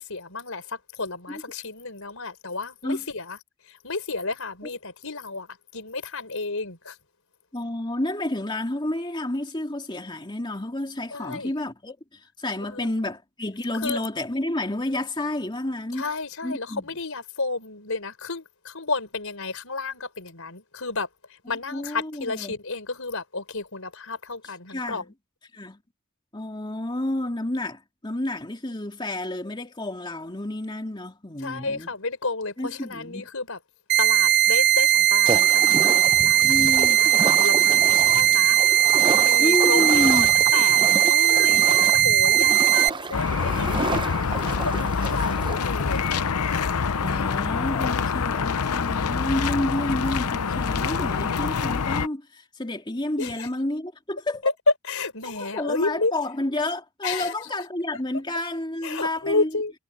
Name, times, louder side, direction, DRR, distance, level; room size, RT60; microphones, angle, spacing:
voice 1, 0.0-3.4 3.7-5.5 5.7-7.0 11.1-11.5 12.6-12.9 13.8-14.0 15.9-21.1 21.5-25.0 31.4-33.6 34.0-36.6 37.0-38.6 39.2-40.3 40.5-46.2 53.2-53.5 54.4-54.5 54.8-56.1 57.0-57.3 58.8-59.7, left 3 dB, 65° left, 5.1 m, -32 dB
voice 2, 7.5-16.1 16.4-16.9 21.7-22.6 24.7-25.0 25.5-25.8 26.3-31.9 32.6-33.3 36.4-37.0 39.4-40.3 47.0-54.5 55.2-59.5, left 1 dB, 20° left, 2.7 m, -30 dB
sound 1, 33.9-42.9, right 11 dB, 50° right, 0.9 m, -18 dB
sound 2, 35.3-46.3, right 3 dB, 20° right, 0.7 m, -31 dB
sound 3, 43.1-52.1, left 5 dB, 90° left, 0.8 m, -26 dB
head